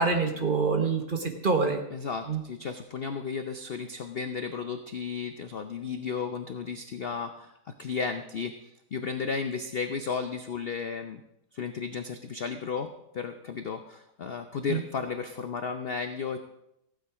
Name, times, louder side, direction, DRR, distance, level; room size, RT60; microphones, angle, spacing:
voice 1, 0.0-1.8 2.3-2.4 14.7-14.8, right 4 dB, 35° right, 4 dB, 1.1 m, -26 dB
voice 2, 1.9-7.5 7.8-11.2 11.5-16.4, left 5 dB, 60° left, 8 dB, 0.6 m, -34 dB
15.0 x 9.1 x 4.8 m, 0.84 s
omnidirectional pair, 1.8 m